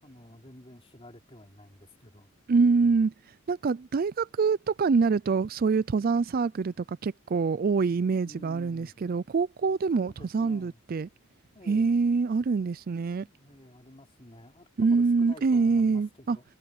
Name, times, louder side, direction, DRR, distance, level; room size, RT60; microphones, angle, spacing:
voice 1, 0.0-2.3 2.8-3.0 8.2-8.9 10.0-10.8 11.5-11.9 13.1-16.4, left 1 dB, 30° left, 3.6 m, -50 dB
voice 2, 2.5-3.1 3.5-11.1 11.7-13.3 14.8-16.4, right 4 dB, 45° right, 0.4 m, -25 dB
head